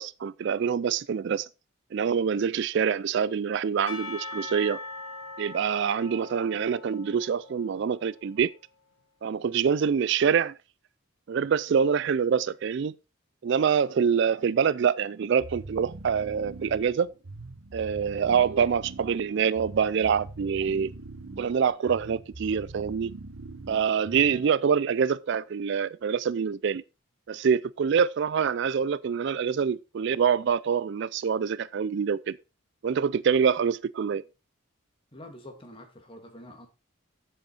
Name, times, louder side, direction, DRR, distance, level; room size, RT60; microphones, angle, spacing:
voice 1, 0.0-1.5 1.9-4.8 5.4-8.5 9.2-10.6 11.3-12.9 13.4-17.1 17.7-20.9 21.4-23.1 23.7-26.8 27.3-32.4 32.8-34.2, right 7 dB, 55° right, 0.3 m, -25 dB
Percussion / Church bell, 3.9-8.3, left 2 dB, 90° left, 1.7 m, -41 dB
sound 1, 15.4-24.6, right 2 dB, 85° right, 1.1 m, -43 dB
voice 2, 35.1-36.7, left 1 dB, 25° left, 2.0 m, -46 dB
7.9 x 7.8 x 4.1 m
head